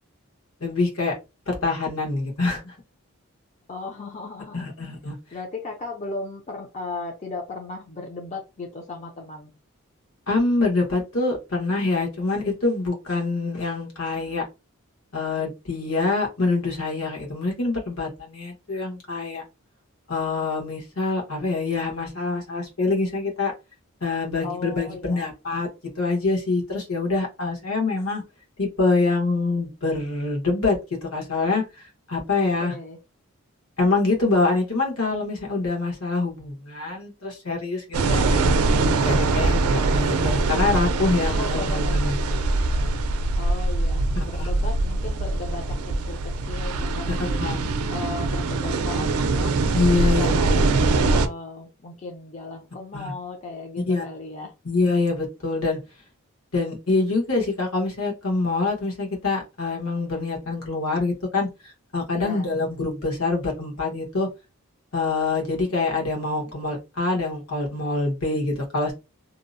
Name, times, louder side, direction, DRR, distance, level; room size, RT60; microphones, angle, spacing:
voice 1, 0.6-1.1 1.5-2.7 4.5-5.2 10.3-14.4 15.1-19.4 20.1-23.5 24.0-25.7 26.0-28.2 28.6-32.7 33.8-38.4 39.0-42.1 44.2-44.5 47.1-47.6 49.7-50.8 52.9-53.1 53.9-54.0 54.6-55.8 56.5-64.3 64.9-68.9, left 3 dB, 75° left, 0 dB, 1.1 m, -25 dB
voice 2, 3.7-4.7 5.3-9.5 24.4-25.3 32.4-33.0 38.0-38.5 41.3-42.0 43.4-47.4 47.9-54.5 62.1-62.5, left 3 dB, 30° left, 0 dB, 0.4 m, -36 dB
sound 1, 37.9-51.3, right 3 dB, 85° right, 0.4 m, -23 dB
2.7 x 2.0 x 2.5 m, 0.26 s
head